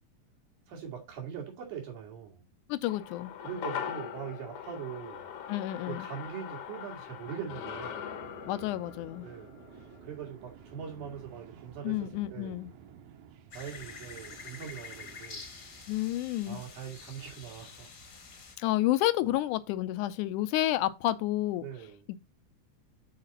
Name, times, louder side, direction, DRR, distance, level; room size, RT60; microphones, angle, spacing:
voice 1, 0.7-2.4 3.4-5.4 5.9-8.0 9.2-12.0 12.3-12.6 13.5-15.5 16.5-17.9 19.2-19.4 21.6-22.0, right 8 dB, 85° right, 3.5 m, -42 dB
voice 2, 2.7-3.3 5.5-6.1 8.5-9.3 11.8-12.7 15.9-16.6 18.6-21.7 22.1-22.2, left 15 dB, 85° left, 2.1 m, -30 dB
sound 1, 2.9-11.4 11.7-11.8, left 9 dB, 65° left, 1.5 m, -42 dB
sound 2, 7.2-16.2, right 9 dB, 70° right, 1.9 m, -53 dB
sound 3, 13.5-18.6, left 4 dB, 50° left, 1.0 m, -47 dB
6.7 x 4.0 x 5.4 m
omnidirectional pair, 3.5 m